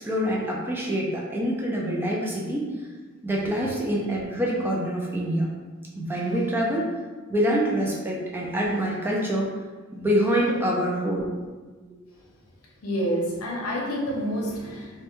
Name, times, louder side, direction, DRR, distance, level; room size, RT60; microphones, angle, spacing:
voice 1, 0.0-2.9 3.2-5.5 6.0-6.9 7.3-9.5 9.9-11.3, equal, 10° right, -3 dB, 0.3 m, -25 dB
voice 2, 12.8-15.0, equal, 85° left, -3 dB, 0.6 m, -28 dB
2.1 x 2.1 x 2.9 m, 1.3 s
head